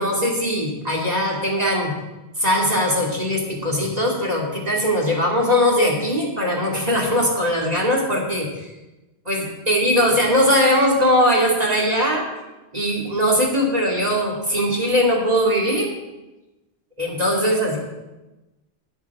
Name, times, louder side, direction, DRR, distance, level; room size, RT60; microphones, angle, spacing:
voice 1, 0.0-1.9 2.4-8.7 9.3-12.3 12.7-15.9 17.0-17.8, equal, 35° right, -2 dB, 2.5 m, -20 dB
11.5 x 11.0 x 4.7 m, 1.0 s
omnidirectional pair, 1.1 m